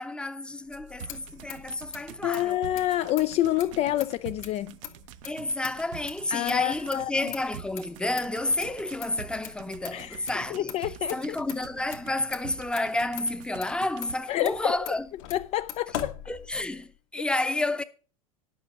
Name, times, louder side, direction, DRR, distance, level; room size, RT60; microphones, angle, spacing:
voice 1, 0.0-2.6 5.2-10.8 11.1-15.1 16.3-17.8, left 2 dB, 5° left, 0.8 m, -30 dB
Motor vehicle (road), 0.7-16.9, left 11 dB, 60° left, 1.7 m, -43 dB
sound 1, 0.7-14.1, right 11 dB, 60° right, 0.6 m, -46 dB
voice 2, 2.2-4.7 6.3-7.3 9.9-11.2 14.3-14.9 15.3-16.1, left 14 dB, 35° left, 0.4 m, -28 dB
10.5 x 6.0 x 6.0 m
hypercardioid pair, 85°, 18 cm